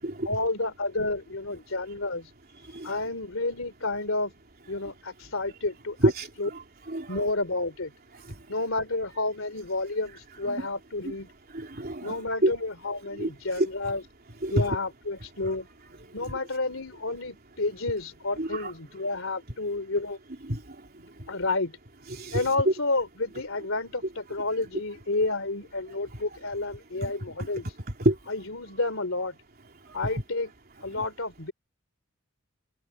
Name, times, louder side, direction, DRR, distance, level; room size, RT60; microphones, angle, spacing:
voice 1, 0.3-2.3 2.8-4.3 4.7-6.0 6.4-6.5 7.1-7.9 8.5-11.3 12.0-14.0 14.5-15.7 16.1-20.2 21.3-21.8 22.3-27.6 28.3-29.3 29.9-30.5 30.8-31.5, left 2 dB, 70° left, 3.5 m, -30 dB
voice 2, 2.6-2.9 6.0-7.3 8.1-8.5 10.5-10.7 11.0-11.2 11.5-12.5 13.1-13.7 14.4-14.8 15.4-15.6 16.3-16.4 18.4-18.7 20.4-21.4 22.1-22.7 26.1-26.2 27.0-27.5 28.0-28.2 29.8-30.2 30.9-31.0, right 1 dB, 45° right, 3.5 m, -29 dB
head